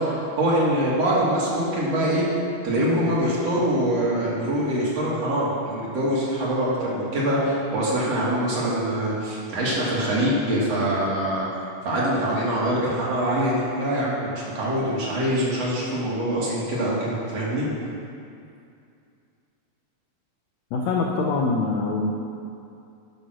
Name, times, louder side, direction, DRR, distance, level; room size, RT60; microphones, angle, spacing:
voice 1, 0.0-2.2 2.6-11.5 11.8-17.7, right 1 dB, 50° right, -6 dB, 2.6 m, -24 dB
voice 2, 20.7-22.1, left 3 dB, 80° left, -1 dB, 1.6 m, -24 dB
11.0 x 5.6 x 6.2 m, 2.5 s
omnidirectional pair, 4.0 m